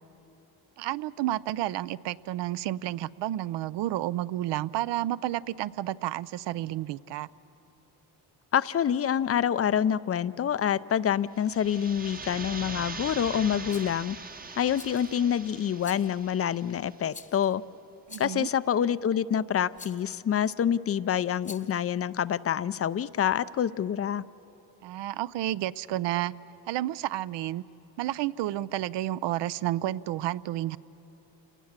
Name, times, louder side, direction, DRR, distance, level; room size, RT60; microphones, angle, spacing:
voice 1, 0.8-7.3 18.1-18.5 24.8-26.3 26.7-27.6 28.0-30.8, right 14 dB, 70° right, 18 dB, 0.6 m, -31 dB
voice 2, 8.5-14.2 14.6-17.6 18.2-24.2, left 9 dB, 35° left, 17 dB, 0.5 m, -27 dB
sound 1, 11.4-17.0, right 4 dB, 20° right, 0.8 m, -41 dB
Rattle, 13.7-14.0 14.7-15.2 15.8-16.2 17.1-17.5 18.1-18.5 19.7-20.1 21.3-21.8, left 4 dB, 15° left, 0.8 m, -47 dB
28.5 x 19.0 x 7.4 m, 2.9 s
cardioid pair, 95°, 43 cm